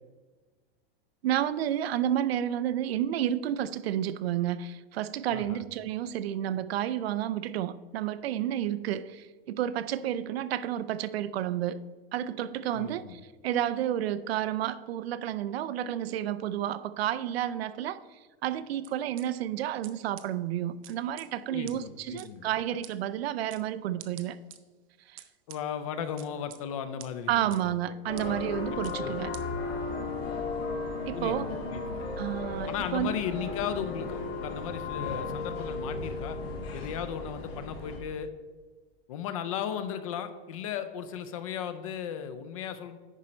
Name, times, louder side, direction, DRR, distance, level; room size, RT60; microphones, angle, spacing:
voice 1, 1.2-11.8 12.1-24.4 25.1-25.2 27.3-29.3 31.1-31.5 32.2-33.2, right 11 dB, 85° right, 0.6 m, -31 dB
voice 2, 5.3-5.6 12.7-13.2 21.5-22.5 25.5-27.7 28.2-28.3 29.0-29.1 31.1-32.0 32.7-36.4 36.7-38.3 39.1-43.0, left 8 dB, 35° left, 0.5 m, -36 dB
sound 1, 18.8-19.2 19.8-19.9 20.2-20.3 20.8-21.3 21.7-21.8 22.2-22.3 22.8-22.9 23.5-23.6 24.0-24.6 25.2-25.6 26.2-26.6 27.0-27.1 27.5-27.6 28.2-28.3 28.8-29.0 29.3-29.4, right 13 dB, 35° right, 0.4 m, -46 dB
sound 2, 28.1-38.0, left 3 dB, 85° left, 2.1 m, -35 dB
10.0 x 5.1 x 4.3 m
supercardioid pair, 180°, 30 cm